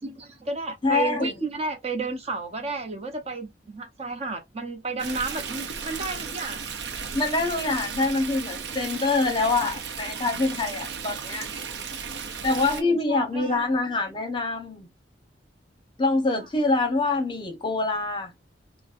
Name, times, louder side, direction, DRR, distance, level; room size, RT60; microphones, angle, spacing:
voice 1, 0.0-6.7 12.6-13.6, right 3 dB, 35° right, 0.6 m, -32 dB
voice 2, 0.8-1.3 7.1-11.5 12.4-14.9 16.0-18.3, left 3 dB, 25° left, 0.8 m, -25 dB
Stream, 5.0-12.8, right 6 dB, 70° right, 0.6 m, -35 dB
3.9 x 2.0 x 2.5 m
head